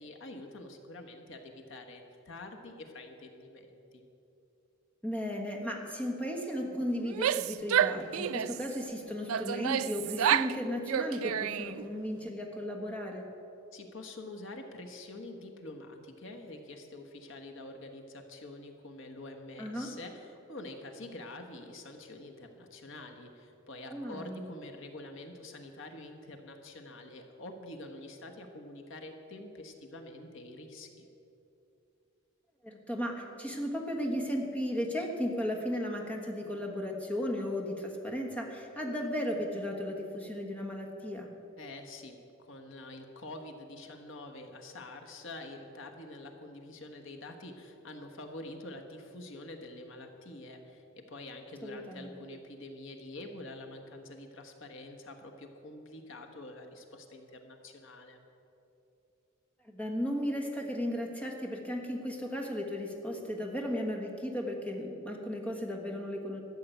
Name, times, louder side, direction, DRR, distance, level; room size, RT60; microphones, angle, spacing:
voice 1, 0.0-4.1 13.7-31.1 41.6-58.2, left 2 dB, 60° left, 3 dB, 1.3 m, -46 dB
voice 2, 5.0-13.2 19.6-19.9 23.9-24.4 32.6-41.3 51.6-52.2 59.6-66.4, equal, 5° left, 0 dB, 1.3 m, -35 dB
Female speech woman speaking / Yell, 7.0-8.7 9.3-10.6 10.9-11.8, right 9 dB, 80° right, 0.4 m, -29 dB
13.5 x 7.6 x 9.2 m, 2.9 s
head